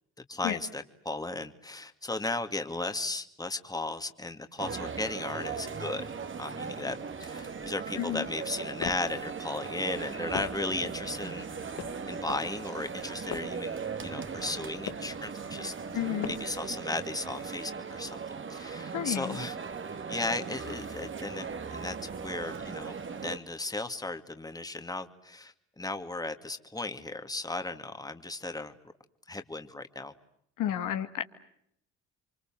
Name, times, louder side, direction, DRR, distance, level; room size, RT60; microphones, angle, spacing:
voice 1, 0.3-6.0 6.4-11.7 12.1-19.6 20.1-28.7 29.3-30.1, left 2 dB, 10° left, 8 dB, 2.3 m, -36 dB
sound 1, 4.6-23.4, right 5 dB, 40° right, 2.0 m, -38 dB
sound 2, 8.4-9.2 9.9-10.8 11.4-12.1 12.8-13.7 14.4-15.2 15.8-16.6, left 9 dB, 60° left, 1.5 m, -42 dB
voice 2, 15.9-16.3 18.9-19.4 30.6-31.3, left 12 dB, 85° left, 7 dB, 2.2 m, -31 dB
29.5 x 24.5 x 7.5 m, 0.71 s
cardioid pair, 90°, 30 cm